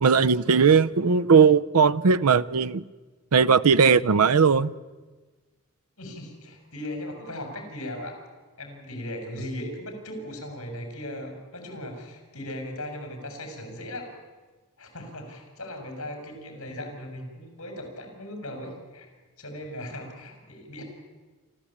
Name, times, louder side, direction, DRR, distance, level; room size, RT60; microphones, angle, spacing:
voice 1, 0.0-2.8 3.3-4.7, right 5 dB, 85° right, 0.6 m, -18 dB
voice 2, 6.0-8.2 8.6-14.1 14.8-19.1 19.4-20.8, left 1 dB, 60° left, 5.8 m, -38 dB
28.0 x 13.0 x 8.6 m
head